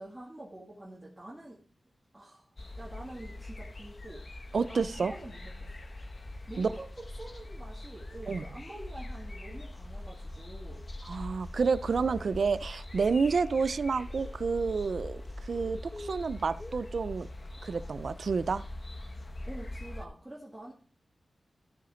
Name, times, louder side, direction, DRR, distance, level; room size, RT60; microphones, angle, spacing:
voice 1, 0.0-1.6 2.1-2.5 2.8-4.3 4.7-5.9 6.5-10.9 19.5-20.7, right 1 dB, 5° right, 2.1 m, -46 dB
sound 1, 2.6-20.1, left 1 dB, 35° left, 0.9 m, -42 dB
voice 2, 4.5-5.1 6.6-6.7 8.3-8.4 11.0-17.3 17.6-18.6, right 5 dB, 65° right, 0.4 m, -29 dB
14.0 x 4.9 x 5.0 m
wide cardioid pair, 140°, 0 cm